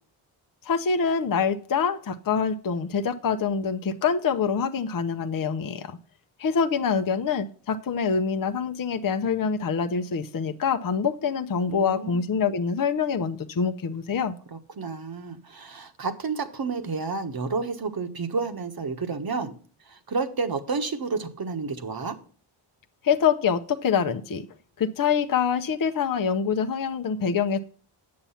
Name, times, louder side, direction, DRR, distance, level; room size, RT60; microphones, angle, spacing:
voice 1, 0.6-6.0 6.4-14.4 23.0-24.5 24.8-27.6, left 6 dB, 40° left, 0.7 m, -25 dB
voice 2, 11.7-12.5 14.5-19.5 19.9-22.2, right 4 dB, 45° right, 1.3 m, -30 dB
8.7 x 6.9 x 5.7 m
cardioid pair, 80°, 50 cm